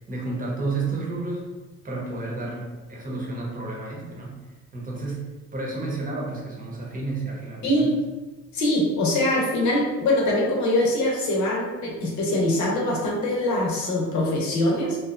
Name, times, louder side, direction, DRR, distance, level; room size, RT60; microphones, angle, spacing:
voice 1, 0.1-1.5 1.8-4.4 4.7-8.0, right 3 dB, 30° right, -3 dB, 0.8 m, -31 dB
voice 2, 7.6-7.9 8.5-15.0, left 1 dB, 70° left, -3 dB, 0.8 m, -23 dB
2.8 x 2.1 x 2.4 m, 1.2 s
cardioid pair, 90°, 30 cm